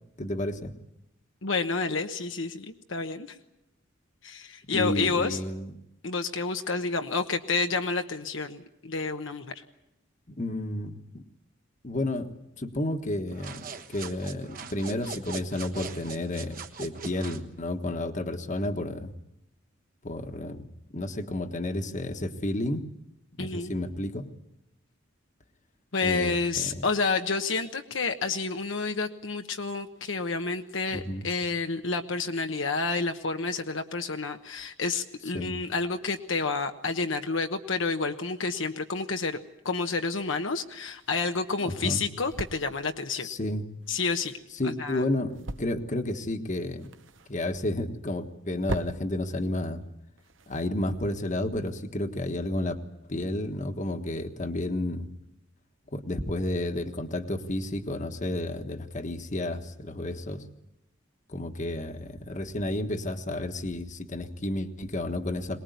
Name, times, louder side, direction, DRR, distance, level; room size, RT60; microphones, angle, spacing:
voice 1, 0.2-0.7 4.7-5.7 10.3-11.2 11.8-19.1 20.0-20.6 20.9-22.8 23.4-24.3 26.0-26.8 30.9-31.3 35.3-35.5 41.6-42.0 43.2-43.7 44.5-46.9 47.3-49.8 50.5-52.8 53.1-55.1 55.9-60.4 61.3-65.6, left 1 dB, 40° left, 7 dB, 1.5 m, -31 dB
voice 2, 1.4-3.4 4.2-5.4 6.0-9.6 23.4-23.7 25.9-39.4 39.6-43.3 43.9-44.4 44.6-45.0, left 4 dB, 70° left, 6 dB, 1.1 m, -29 dB
sound 1, 13.3-17.5, right 5 dB, 45° right, 1.3 m, -41 dB
sound 2, 40.6-51.3, right 2 dB, 70° right, 1.1 m, -43 dB
23.0 x 20.0 x 9.3 m, 0.86 s
head